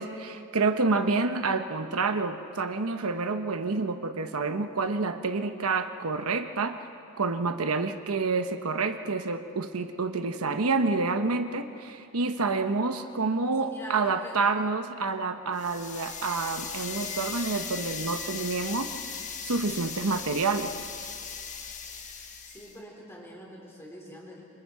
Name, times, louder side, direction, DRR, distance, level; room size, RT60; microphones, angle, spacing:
voice 1, 0.0-6.8 7.2-18.9 19.4-20.7, right 4 dB, 80° right, 7 dB, 1.0 m, -28 dB
voice 2, 13.6-14.4 22.4-24.4, equal, 10° left, -2 dB, 4.1 m, -45 dB
sound 1, 15.6-22.8, left 6 dB, 35° left, 1.4 m, -38 dB
27.5 x 25.5 x 4.8 m, 2.5 s
head